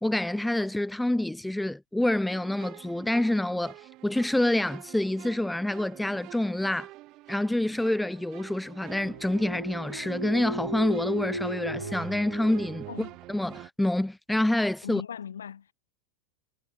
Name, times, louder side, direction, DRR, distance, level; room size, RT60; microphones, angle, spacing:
voice 1, 0.0-6.9 7.3-15.0, left 1 dB, 5° left, 1.6 m, -27 dB
sound 1, 2.3-13.7, right 19 dB, 40° right, 5.0 m, -45 dB
sound 2, 8.4-11.9, equal, 90° left, 1.7 m, -36 dB
voice 2, 14.8-15.7, left 8 dB, 65° left, 6.0 m, -39 dB
figure-of-eight pair, 90°, 0 cm